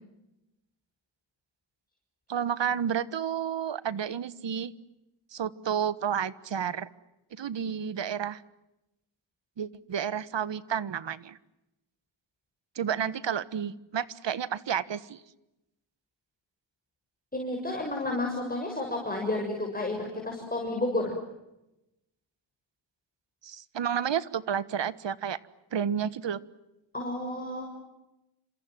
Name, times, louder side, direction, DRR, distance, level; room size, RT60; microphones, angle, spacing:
voice 1, 2.3-4.7 5.3-6.9 7.4-8.4 9.6-11.4 12.7-15.2 23.4-25.4 25.7-26.4, right 8 dB, 65° right, 16 dB, 1.5 m, -31 dB
voice 2, 17.3-21.1 26.9-27.6, left 2 dB, 20° left, 1 dB, 7.0 m, -31 dB
29.5 x 26.5 x 7.6 m, 0.92 s
cardioid pair, 90°, 47 cm